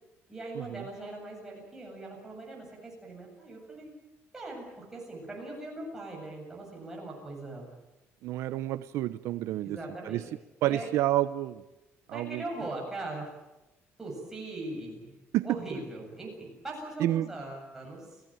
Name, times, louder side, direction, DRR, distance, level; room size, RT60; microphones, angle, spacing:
voice 1, 0.3-3.9 4.3-7.7 9.6-10.3 10.6-10.9 12.1-13.3 14.0-15.1 15.4-18.2, right 2 dB, 10° right, -2 dB, 7.9 m, -40 dB
voice 2, 8.2-9.8 10.0-10.2 10.6-11.6 12.1-12.4 15.3-15.5 17.0-17.3, right 14 dB, 80° right, 13 dB, 0.8 m, -29 dB
30.0 x 17.0 x 9.1 m, 0.99 s
cardioid pair, 175°, 5 cm